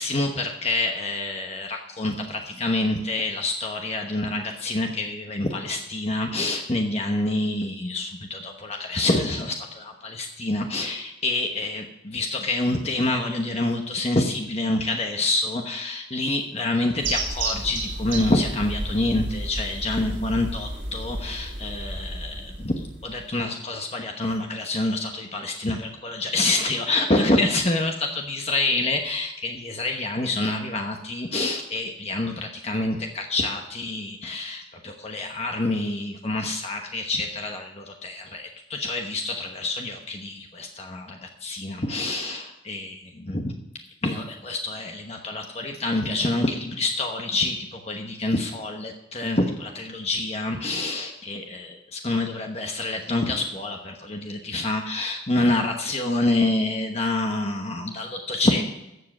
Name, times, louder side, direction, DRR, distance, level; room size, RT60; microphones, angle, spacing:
voice 1, 0.0-43.5 44.0-58.6, left 2 dB, 35° left, 3 dB, 1.1 m, -27 dB
sound 1, 17.0-23.3, right 2 dB, 80° right, 3.1 m, -32 dB
14.0 x 7.6 x 6.1 m, 0.88 s
head